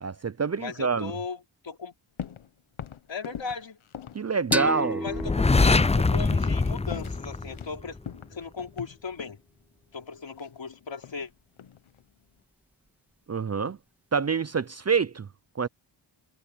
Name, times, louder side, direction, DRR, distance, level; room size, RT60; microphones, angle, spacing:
voice 1, 0.0-1.1 4.1-5.0 13.3-13.8 14.1-15.3 15.6-15.7, right 5 dB, 35° right, 0.6 m, -26 dB
voice 2, 0.6-1.9 3.1-3.8 4.7-5.5 5.9-8.0 8.3-9.4 9.9-11.3, left 5 dB, 65° left, 4.2 m, -37 dB
sound 1, 2.2-2.5 2.8-4.8 5.1-5.3 5.7-6.0 6.3-6.6 6.9-7.8 8.1-9.4 10.4-11.3 11.6-12.0, left 9 dB, 90° left, 1.2 m, -40 dB
sound 2, 4.5-7.9, equal, 5° right, 2.8 m, -34 dB
sound 3, 5.1-8.0, left 3 dB, 15° left, 0.4 m, -23 dB
wide cardioid pair, 95°, 47 cm